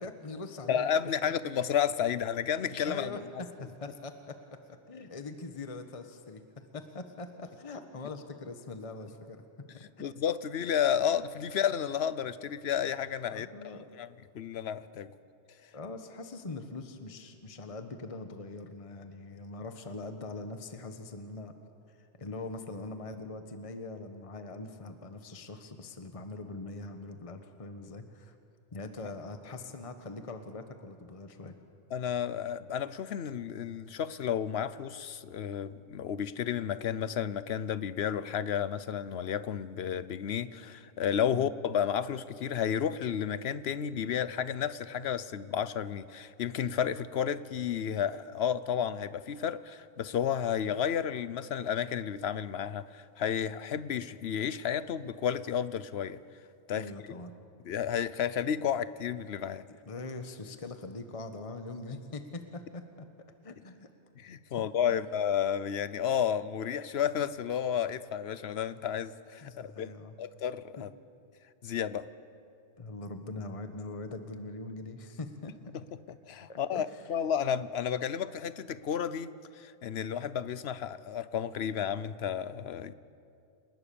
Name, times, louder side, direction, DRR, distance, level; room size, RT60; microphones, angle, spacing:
voice 1, 0.0-0.9 1.2-1.3 2.8-4.6 4.9-9.4 9.7-10.0 13.3-13.9 15.7-21.5 21.9-28.4 28.7-31.6 41.3-41.5 56.7-57.3 59.9-63.1 63.4-63.9 64.6-65.0 69.4-70.1 70.8-70.9 72.8-75.6 76.5-77.1, left 3 dB, 30° left, 7 dB, 1.2 m, -42 dB
voice 2, 0.7-3.2 10.0-13.5 13.9-14.1 14.3-15.1 31.9-56.2 56.7-56.9 57.6-59.6 64.2-69.9 70.2-70.9 71.6-72.1 76.3-82.9, left 8 dB, 65° left, 15 dB, 1.0 m, -32 dB
29.0 x 19.0 x 7.0 m, 2.5 s
omnidirectional pair, 1.2 m